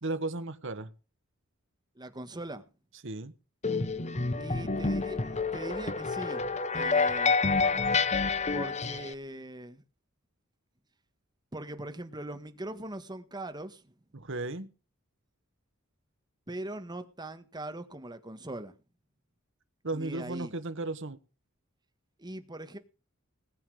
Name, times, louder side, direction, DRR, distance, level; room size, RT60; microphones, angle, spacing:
voice 1, 0.0-0.9 3.0-3.3 14.1-14.7 19.8-21.2, right 2 dB, 65° right, 1.3 m, -35 dB
voice 2, 1.9-2.7 4.4-6.5 6.7-7.4 8.5-9.8 11.5-13.9 16.5-18.7 19.9-20.5 22.2-22.8, right 1 dB, 20° right, 1.6 m, -41 dB
sound 1, 3.6-9.1, left 4 dB, 35° left, 0.9 m, -28 dB
19.5 x 8.6 x 4.9 m
head